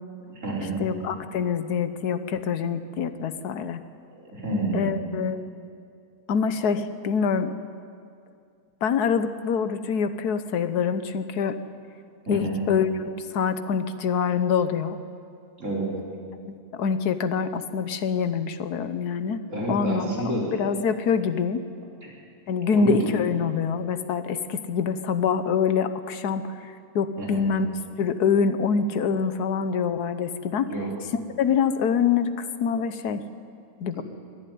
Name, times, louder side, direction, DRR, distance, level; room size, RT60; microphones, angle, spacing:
voice 1, 0.3-0.8 4.2-4.8 12.3-12.5 15.6-15.9 19.5-20.6 22.0-22.1 22.7-23.0 27.2-27.4 30.7-30.9 33.9-34.0, right 2 dB, 50° right, -4 dB, 4.7 m, -29 dB
voice 2, 0.8-3.8 4.7-5.4 6.3-7.6 8.8-11.6 12.3-15.0 16.5-19.4 19.7-21.6 22.5-27.7 28.0-30.7 31.4-33.2 33.8-34.0, left 6 dB, 85° left, 11 dB, 1.5 m, -25 dB
22.0 x 12.5 x 9.5 m, 2.3 s
omnidirectional pair, 1.6 m